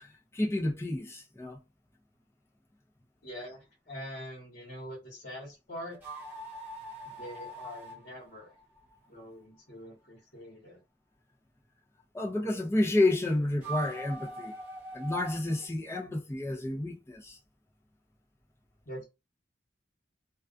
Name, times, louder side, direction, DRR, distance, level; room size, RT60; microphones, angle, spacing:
voice 1, 0.0-1.6 12.1-14.5 14.9-17.4, left 2 dB, 15° left, 0.5 m, -30 dB
voice 2, 3.2-6.0 7.0-8.6 9.1-10.8 18.8-19.0, equal, 55° left, 1.1 m, -44 dB
sound 1, 5.9-9.2 13.5-15.7, right 2 dB, 10° right, 1.1 m, -42 dB
2.3 x 2.3 x 2.4 m
head